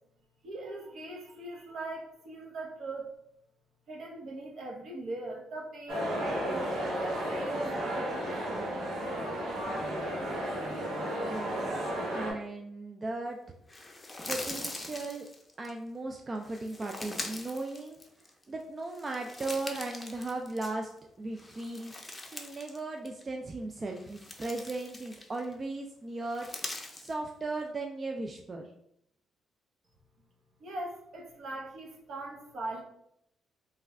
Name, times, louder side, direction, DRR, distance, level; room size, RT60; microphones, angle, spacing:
voice 1, 0.4-3.2 3.9-6.7 7.0-8.7 30.6-32.8, right 2 dB, 65° right, -1 dB, 0.9 m, -41 dB
sound 1, 5.9-12.3, equal, 85° right, 1.2 m, -33 dB
voice 2, 11.2-13.4 14.3-15.3 15.6-18.0 18.5-20.9 21.2-21.9 22.3-26.5 26.9-28.7, right 2 dB, 30° right, 2 dB, 0.3 m, -37 dB
sound 2, 13.7-15.7 16.4-18.4 18.8-21.0 21.3-22.8 23.1-23.2 23.8-25.5 26.2-27.1, left 2 dB, 20° left, 0.5 m, -42 dB
3.2 x 2.2 x 3.5 m, 0.75 s
cardioid pair, 90°, 0 cm